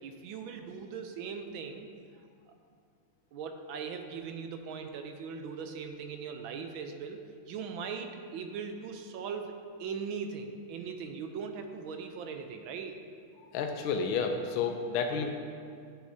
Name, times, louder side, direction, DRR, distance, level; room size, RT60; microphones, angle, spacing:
voice 1, 0.0-1.9 2.5-2.6 3.3-13.0, right 5 dB, 80° right, 6 dB, 1.4 m, -40 dB
voice 2, 13.5-15.3, left 5 dB, 85° left, 4 dB, 1.5 m, -30 dB
14.0 x 6.2 x 2.7 m, 2.2 s
omnidirectional pair, 2.3 m